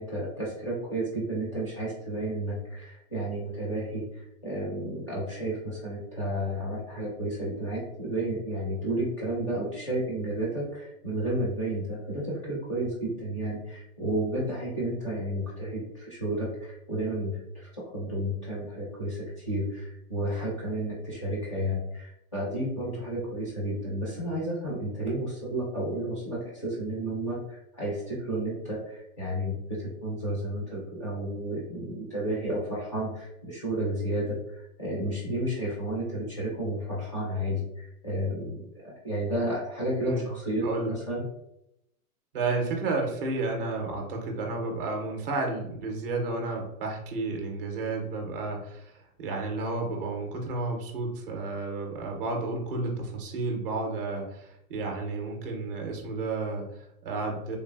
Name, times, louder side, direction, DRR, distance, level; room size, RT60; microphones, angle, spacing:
voice 1, 0.0-41.2, right 1 dB, 20° left, -7 dB, 0.4 m, -32 dB
voice 2, 40.6-41.0 42.3-57.6, right 3 dB, 40° right, 1 dB, 0.5 m, -32 dB
3.2 x 2.3 x 2.2 m, 0.79 s
hypercardioid pair, 170°, 45 cm